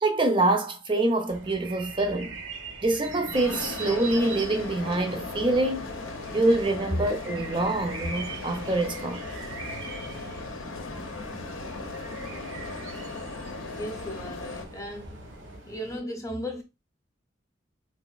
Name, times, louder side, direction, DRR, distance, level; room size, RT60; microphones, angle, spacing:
voice 1, 0.0-2.4 2.8-5.9 6.3-9.2, right 2 dB, 25° right, 0.5 m, -25 dB
sound 1, 1.3-15.6, right 4 dB, 65° right, 0.7 m, -42 dB
sound 2, 3.0-16.0, equal, 90° right, 1.3 m, -47 dB
sound 3, 3.3-14.7, left 3 dB, 80° left, 0.6 m, -38 dB
voice 2, 13.8-15.2 15.7-16.6, equal, 15° left, 0.7 m, -36 dB
4.0 x 2.5 x 2.3 m
head